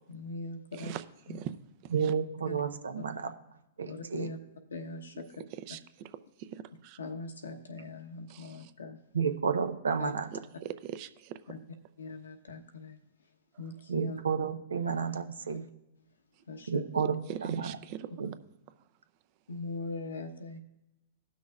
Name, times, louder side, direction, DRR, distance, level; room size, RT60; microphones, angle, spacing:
voice 1, 0.1-1.0 1.3-1.4 2.0-2.1 2.5-2.6 3.9-4.4 4.7-5.3 7.0-9.0 10.0-10.1 11.5-11.6 12.0-13.0 13.6-14.2 16.5-16.8 19.5-20.6, left 3 dB, 85° left, 4 dB, 1.0 m, -41 dB
voice 2, 1.9-3.3 3.8-4.3 9.1-10.3 13.9-15.7 16.7-17.7 18.2-18.3, right 6 dB, 85° right, 8 dB, 0.7 m, -31 dB
voice 3, 6.5-7.0 8.3-8.7 10.3-10.4 10.8-11.4 17.3-18.1, right 11 dB, 45° right, 12 dB, 0.5 m, -41 dB
18.0 x 6.1 x 2.4 m, 0.93 s
hypercardioid pair, 120°, 0 cm